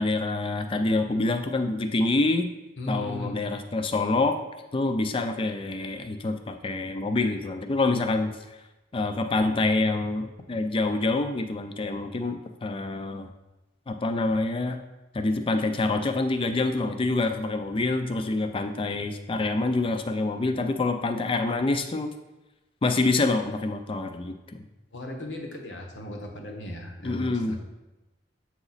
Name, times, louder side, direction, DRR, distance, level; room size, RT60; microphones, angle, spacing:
voice 1, 0.0-2.5 2.9-4.4 4.7-8.3 8.9-13.3 13.9-14.8 15.1-22.1 22.8-24.6 27.0-27.6, left 2 dB, 30° left, 7 dB, 0.4 m, -26 dB
voice 2, 2.8-3.4 24.9-27.6, left 1 dB, 80° left, 2 dB, 1.1 m, -36 dB
7.8 x 3.0 x 4.0 m, 1.0 s
head